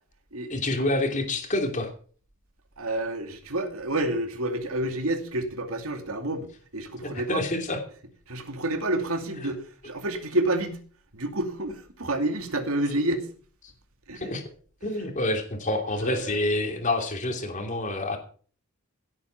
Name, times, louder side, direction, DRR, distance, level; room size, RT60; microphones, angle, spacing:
voice 1, 0.5-1.9 7.0-7.8 14.1-14.5 14.8-18.2, left 2 dB, 35° left, 2.9 m, -27 dB
voice 2, 2.8-7.5 8.3-10.8 11.1-13.3 14.1-14.3 15.0-15.1 16.0-16.4, right 1 dB, 75° right, 2.5 m, -29 dB
17.0 x 8.6 x 5.8 m
head